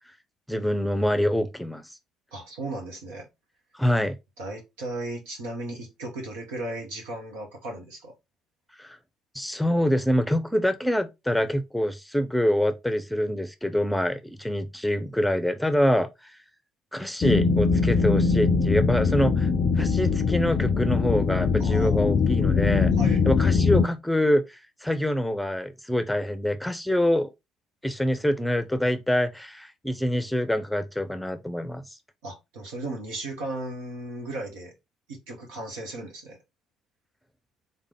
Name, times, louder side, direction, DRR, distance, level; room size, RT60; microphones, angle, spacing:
voice 1, 0.5-1.8 3.7-4.2 8.8-9.0 9.3-16.4 16.9-19.5 19.8-22.9 23.2-27.3 27.8-31.8, equal, 5° left, 0.7 m, -25 dB
voice 2, 2.3-3.3 4.4-8.1 21.6-22.1 23.0-23.2 32.2-34.7 35.1-36.4, right 2 dB, 75° right, 1.7 m, -36 dB
sound 1, 17.2-23.9, left 5 dB, 50° left, 0.4 m, -22 dB
4.1 x 3.7 x 3.5 m
figure-of-eight pair, 50°, 0 cm